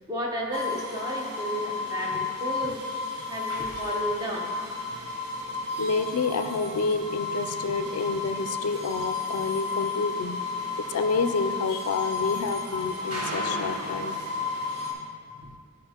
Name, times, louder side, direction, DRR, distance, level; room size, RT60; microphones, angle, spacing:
voice 1, 0.0-2.8 3.3-4.5, right 1 dB, 15° right, -2 dB, 0.9 m, -32 dB
sound 1, 0.5-14.9, left 3 dB, 85° right, 1.1 m, -32 dB
voice 2, 5.8-10.4 10.8-14.2 14.8-15.0 15.4-15.6, left 4 dB, 80° left, 8 dB, 0.4 m, -28 dB
11.0 x 5.0 x 2.9 m, 2.1 s
head